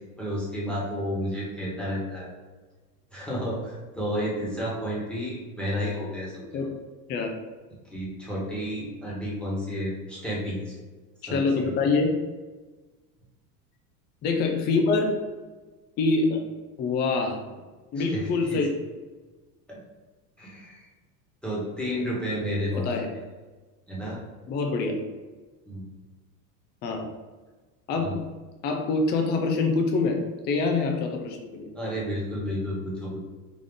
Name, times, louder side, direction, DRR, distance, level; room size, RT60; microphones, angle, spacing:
voice 1, 0.2-2.3 3.1-6.7 7.9-10.8 11.2-11.7 17.9-18.6 19.7-19.8 20.4-20.9 21.4-22.9 23.9-24.2 25.7-25.9 27.9-28.2 31.7-33.2, equal, ahead, -6 dB, 1.2 m, -31 dB
voice 2, 11.3-12.2 14.2-15.2 16.0-16.4 16.8-17.4 17.9-18.7 22.8-23.1 24.5-25.0 26.8-27.1 27.9-28.2 28.6-30.2 30.4-31.7, left 3 dB, 25° left, 3 dB, 0.3 m, -25 dB
3.9 x 2.4 x 3.5 m, 1.3 s
supercardioid pair, 110°, 47 cm